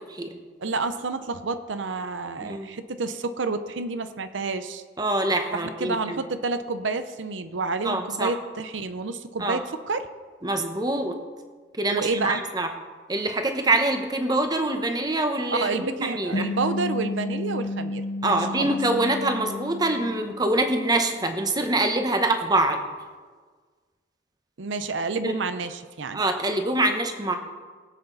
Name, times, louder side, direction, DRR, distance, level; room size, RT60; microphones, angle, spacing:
voice 1, 0.6-4.8 5.5-10.1 11.9-12.4 15.5-18.8 24.6-26.2, right 3 dB, 85° right, 10 dB, 0.7 m, -29 dB
voice 2, 5.0-6.2 7.8-8.3 9.4-9.6 10.4-11.2 11.8-12.7 13.1-16.4 18.2-22.8 25.2-25.3 26.1-27.4, right 2 dB, 20° right, 5 dB, 1.0 m, -25 dB
sound 1, 16.3-21.0, left 1 dB, 65° left, 1.1 m, -32 dB
21.5 x 8.0 x 4.0 m, 1.5 s
head